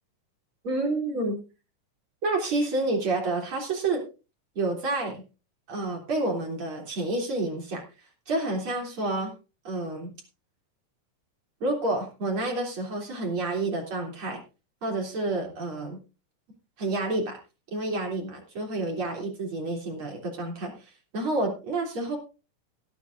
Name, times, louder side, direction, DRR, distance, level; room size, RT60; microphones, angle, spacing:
voice 1, 0.6-1.4 2.2-4.0 4.6-5.2 5.7-7.8 8.3-9.3 9.6-10.1 11.6-14.4 14.8-16.0 16.8-17.4 17.7-22.2, right 2 dB, 40° right, 1 dB, 3.9 m, -29 dB
18.0 x 11.5 x 2.6 m, 0.32 s
omnidirectional pair, 3.9 m